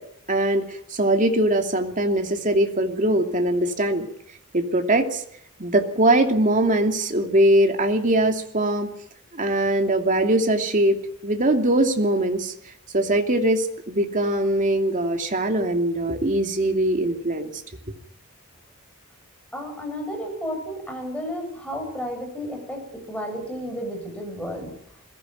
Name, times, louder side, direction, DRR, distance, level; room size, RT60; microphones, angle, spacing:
voice 1, 0.3-4.1 4.5-5.2 5.6-8.9 9.3-12.5 12.9-17.5, right 1 dB, 35° right, 4 dB, 2.8 m, -21 dB
voice 2, 19.5-24.7, equal, 5° left, 2 dB, 7.8 m, -32 dB
21.5 x 15.5 x 9.3 m, 0.68 s
head